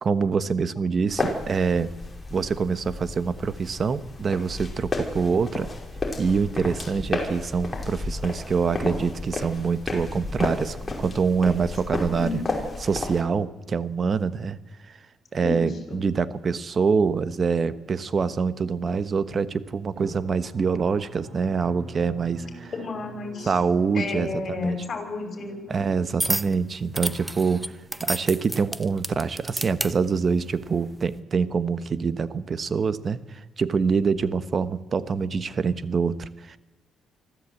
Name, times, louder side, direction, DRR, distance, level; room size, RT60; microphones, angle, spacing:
voice 1, 0.0-1.9 2.3-5.7 6.2-12.4 12.8-14.6 14.9-15.0 15.3-22.7 23.5-24.8 25.7-27.6 28.0-36.6, right 5 dB, 40° right, 14 dB, 1.2 m, -25 dB
sound 1, 1.1-13.2, left 2 dB, 20° left, 5.5 m, -32 dB
voice 2, 15.4-16.0 22.7-23.5 23.9-25.6, left 3 dB, 45° left, 4 dB, 6.3 m, -31 dB
Drum, 20.0-29.2, right 3 dB, 65° right, 6.5 m, -46 dB
sound 2, 26.2-26.5 27.0-29.9 30.7-30.9, right 1 dB, 5° right, 0.8 m, -29 dB
24.5 x 15.0 x 8.5 m, 1.1 s
cardioid pair, 90°, 0 cm